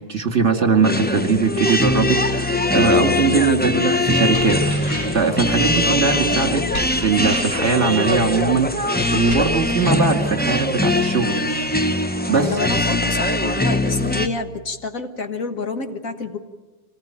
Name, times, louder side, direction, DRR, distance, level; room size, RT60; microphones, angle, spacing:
voice 1, 0.1-4.6 4.9-6.6 6.9-11.7 12.3-12.6, right 4 dB, 45° right, 5 dB, 2.4 m, -21 dB
sound 1, 0.8-14.3, left 1 dB, 10° left, 0.6 m, -21 dB
sound 2, 4.3-5.3 6.7-7.7 9.3-9.5, right 1 dB, 40° left, 7.0 m, -33 dB
voice 2, 12.4-16.4, left 4 dB, 60° left, 6 dB, 1.8 m, -28 dB
25.0 x 19.0 x 9.0 m, 1.2 s
omnidirectional pair, 1.7 m